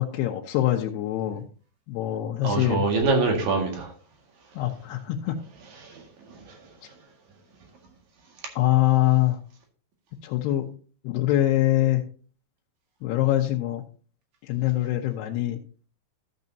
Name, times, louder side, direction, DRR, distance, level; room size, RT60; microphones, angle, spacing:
voice 1, 0.0-1.4 1.9-2.8 4.6-5.3 8.6-9.4 10.2-10.7 11.0-12.0 13.0-13.8 14.5-15.6, left 14 dB, 80° left, 2.8 m, -24 dB
voice 2, 2.4-3.9 5.8-6.7, right 3 dB, 55° right, 2.8 m, -26 dB
13.5 x 7.9 x 2.7 m
omnidirectional pair, 4.8 m